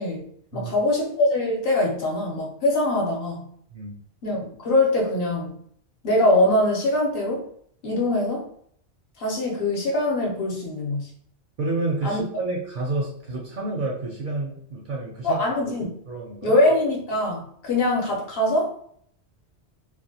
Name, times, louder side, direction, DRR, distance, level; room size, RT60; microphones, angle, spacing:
voice 1, 0.0-3.5 4.2-5.6 6.0-7.5 7.8-8.5 9.2-11.1 12.0-12.2 15.2-15.9 16.4-18.7, left 1 dB, 60° left, -2 dB, 0.8 m, -23 dB
voice 2, 11.6-15.4 16.1-16.5, right 2 dB, 60° right, -2 dB, 0.6 m, -29 dB
2.4 x 2.1 x 2.7 m, 0.64 s
omnidirectional pair, 1.2 m